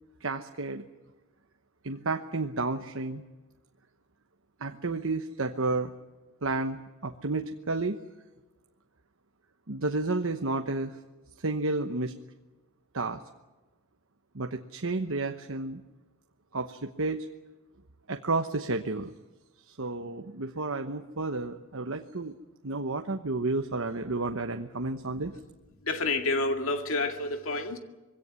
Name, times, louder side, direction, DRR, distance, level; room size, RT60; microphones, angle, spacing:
voice 1, 0.2-0.8 1.8-3.2 4.6-5.9 6.4-8.0 9.7-11.0 11.4-12.1 12.9-13.2 14.3-15.8 16.5-17.3 18.1-19.1 19.7-22.3 22.6-25.3, right 3 dB, 65° right, 1.1 m, -31 dB
voice 2, 25.8-27.8, left 2 dB, 65° left, 2.3 m, -29 dB
22.5 x 17.0 x 9.8 m
head